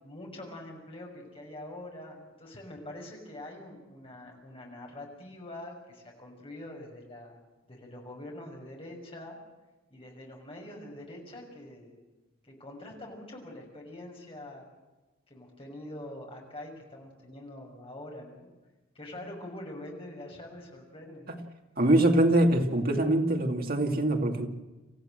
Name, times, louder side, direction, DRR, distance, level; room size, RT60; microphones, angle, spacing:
voice 1, 0.0-7.4 7.7-9.4 9.9-11.9 12.4-14.7 15.3-18.5 18.9-21.3, left 1 dB, 25° left, 0 dB, 6.3 m, -44 dB
voice 2, 21.8-24.5, right 1 dB, 45° right, 3 dB, 2.5 m, -23 dB
27.5 x 15.0 x 7.8 m, 1.1 s
head